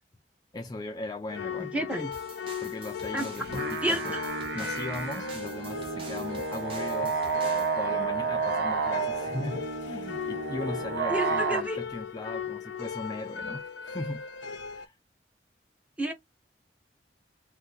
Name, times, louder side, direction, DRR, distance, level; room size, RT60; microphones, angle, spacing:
voice 1, 0.5-2.0 2.6-4.2 4.5-14.2 14.7-14.9, left 2 dB, 20° left, 0.4 m, -38 dB
sound 1, 1.3-14.9, left 6 dB, 90° left, 0.5 m, -38 dB
voice 2, 1.6-2.1 3.1-3.3 3.8-4.0 11.1-11.8 16.0-16.1, right 1 dB, 10° right, 0.7 m, -29 dB
sound 2, 2.1-7.8, right 3 dB, 30° right, 1.0 m, -48 dB
sound 3, 3.4-11.6, right 4 dB, 75° right, 0.8 m, -31 dB
2.5 x 2.5 x 3.8 m
head